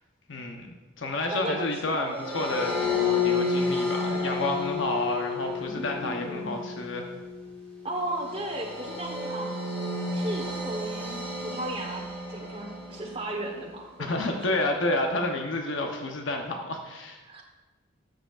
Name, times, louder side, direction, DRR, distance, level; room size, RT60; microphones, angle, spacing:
voice 1, 0.3-7.1 14.0-17.4, left 2 dB, 90° left, 3 dB, 0.9 m, -30 dB
voice 2, 1.3-2.8 5.6-6.6 7.8-9.6 10.1-14.4 17.2-17.4, right 1 dB, 30° right, 2 dB, 1.2 m, -36 dB
sound 1, 2.1-13.5, left 4 dB, 10° left, 2.8 m, -31 dB
13.0 x 7.7 x 2.5 m, 1.1 s
head